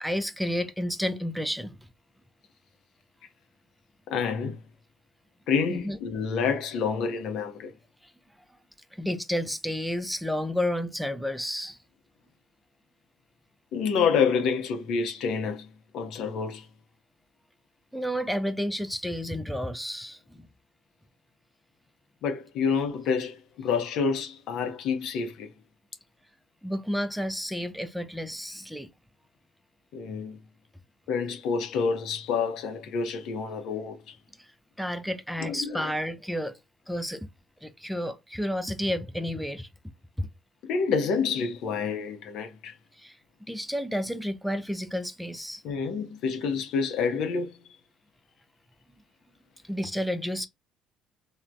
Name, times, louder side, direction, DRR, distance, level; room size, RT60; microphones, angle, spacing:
voice 1, 0.0-1.8 5.7-6.0 8.9-11.8 17.9-20.5 26.6-28.9 34.4-34.5 34.8-36.6 36.9-37.3 37.6-39.7 40.2-40.3 43.0-43.2 43.5-45.6 49.7-50.5, equal, ahead, 0.4 m, -31 dB
voice 2, 4.1-4.6 5.5-7.7 13.7-15.7 15.9-16.7 22.2-25.5 29.9-30.4 31.1-34.2 35.4-35.9 40.6-42.8 45.6-47.6, left 5 dB, 65° left, 0.5 m, -28 dB
3.2 x 2.1 x 2.5 m
hypercardioid pair, 55°, 0 cm